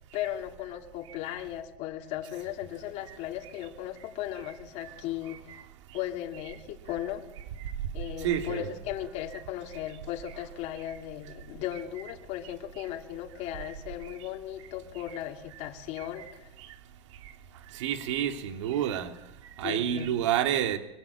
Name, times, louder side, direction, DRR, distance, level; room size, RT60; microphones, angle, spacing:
voice 1, 0.1-5.4 5.9-7.2 7.9-16.5 19.6-20.1, left 12 dB, 45° left, 2 dB, 3.2 m, -37 dB
voice 2, 8.2-8.6 16.0-16.1 17.7-19.1 19.6-20.8, right 10 dB, 80° right, 6 dB, 3.1 m, -28 dB
24.0 x 23.5 x 8.5 m, 0.86 s
supercardioid pair, 145°, 16 cm